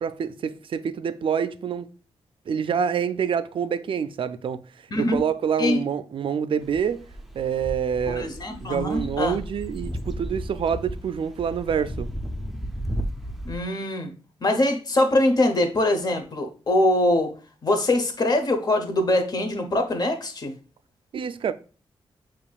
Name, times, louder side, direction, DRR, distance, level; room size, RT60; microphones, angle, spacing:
voice 1, 0.0-1.9 2.5-4.6 5.0-7.0 7.3-8.3 8.6-12.1 21.1-21.5, right 7 dB, 60° right, 0.4 m, -26 dB
sound 1, 6.6-13.6, equal, ahead, 0.5 m, -34 dB
voice 2, 8.1-9.4 13.4-14.1 14.4-17.3 17.6-20.5, left 1 dB, 40° left, 0.9 m, -23 dB
6.9 x 2.9 x 2.4 m
wide cardioid pair, 105°, 10 cm